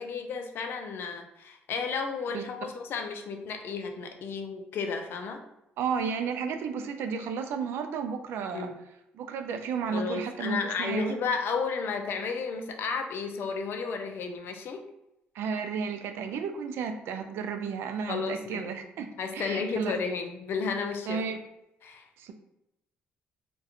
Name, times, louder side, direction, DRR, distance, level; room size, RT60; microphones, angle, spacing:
voice 1, 0.0-5.4 8.5-8.8 9.9-14.9 18.1-18.7 19.2-21.2 21.8-22.1, left 5 dB, 60° left, 5 dB, 0.4 m, -33 dB
voice 2, 5.8-8.7 9.1-11.1 15.3-20.0 21.1-21.4 22.2-22.3, right 6 dB, 75° right, 6 dB, 0.3 m, -32 dB
2.4 x 2.2 x 2.8 m, 0.85 s
cardioid pair, 80°, 4 cm